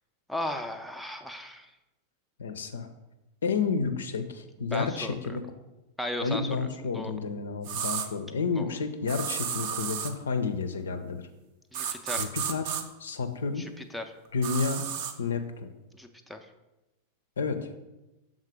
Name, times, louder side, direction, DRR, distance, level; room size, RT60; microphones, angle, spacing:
voice 1, 0.3-1.7 4.7-5.2 6.0-6.4 6.9-7.1 8.6-8.7 11.7-12.3 13.6-14.0 16.0-16.4, left 1 dB, ahead, 6 dB, 0.5 m, -36 dB
voice 2, 2.4-2.9 3.4-5.4 6.2-11.2 12.2-12.7 13.0-13.6 14.3-14.8 15.2-15.7 17.4-17.7, left 4 dB, 70° left, 8 dB, 0.5 m, -30 dB
sound 1, 7.6-8.1 9.1-10.1 11.7-12.8 14.4-15.1, right 8 dB, 50° right, 0.5 m, -32 dB
6.4 x 3.8 x 4.8 m, 1.0 s
figure-of-eight pair, 90°, 0 cm